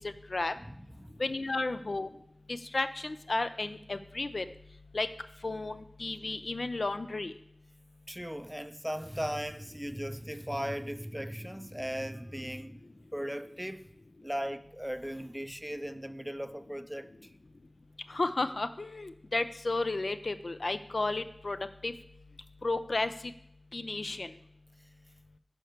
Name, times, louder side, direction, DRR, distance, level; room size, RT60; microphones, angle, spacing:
voice 1, 0.6-1.2 8.1-12.8 13.1-13.9 14.2-17.3, equal, 10° right, 0.4 m, -38 dB
voice 2, 1.2-2.1 2.7-4.5 4.9-5.1 5.4-7.3 18.1-21.6 21.8-21.9 22.6-23.1 23.7-24.3, left 2 dB, 85° left, 0.3 m, -32 dB
6.5 x 4.4 x 6.5 m
wide cardioid pair, 50°, 0 cm